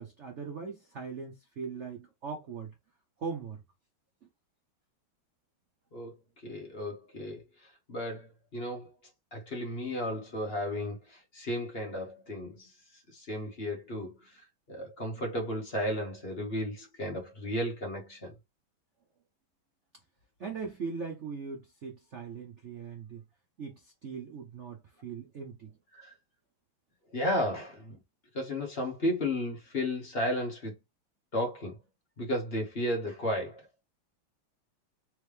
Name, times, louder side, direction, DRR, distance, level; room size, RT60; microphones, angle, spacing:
voice 1, 0.0-2.7 3.2-3.6 20.4-23.2 23.6-25.7, right 5 dB, 70° right, 0.6 m, -40 dB
voice 2, 6.4-8.9 9.3-12.7 13.1-14.4 14.7-18.3 25.9-26.1 27.1-28.0 28.3-30.7 31.3-31.8 32.2-33.6, left 1 dB, 35° left, 1.3 m, -34 dB
3.6 x 3.2 x 3.3 m
omnidirectional pair, 2.2 m